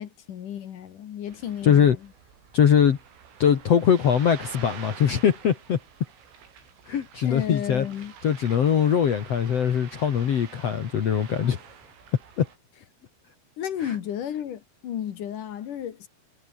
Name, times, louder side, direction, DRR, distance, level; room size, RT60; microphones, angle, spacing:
voice 1, 0.0-2.0 7.2-8.1 13.6-16.1, left 10 dB, 55° left, 2.5 m, -33 dB
Ocean, 1.3-12.6, right 7 dB, 85° right, 7.0 m, -47 dB
voice 2, 1.6-2.0 2.5-3.0 3.4-5.8 6.9-7.8 8.2-11.6 12.4-12.5 13.8-13.9, left 8 dB, 75° left, 1.4 m, -21 dB
omnidirectional pair, 5.6 m